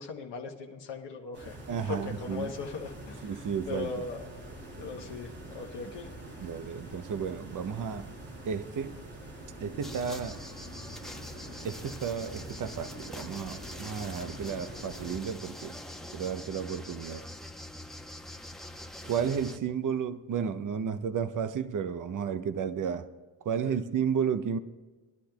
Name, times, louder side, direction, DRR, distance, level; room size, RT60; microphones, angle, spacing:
voice 1, 0.0-1.6 1.8-4.2 4.8-6.1 23.6-23.7, left 4 dB, 65° left, 1.1 m, -39 dB
sound 1, 1.3-15.2, right 1 dB, 90° right, 3.1 m, -45 dB
voice 2, 1.7-2.5 3.2-3.9 6.4-8.1 8.4-9.0 9.6-10.4 11.6-15.8 16.1-17.3 19.0-23.1 23.4-24.6, right 7 dB, 45° right, 0.7 m, -32 dB
sound 2, 9.7-17.9, left 4 dB, 40° left, 1.5 m, -54 dB
sound 3, 9.8-19.6, left 1 dB, ahead, 0.9 m, -44 dB
22.0 x 11.5 x 2.3 m
supercardioid pair, 45°, 45 cm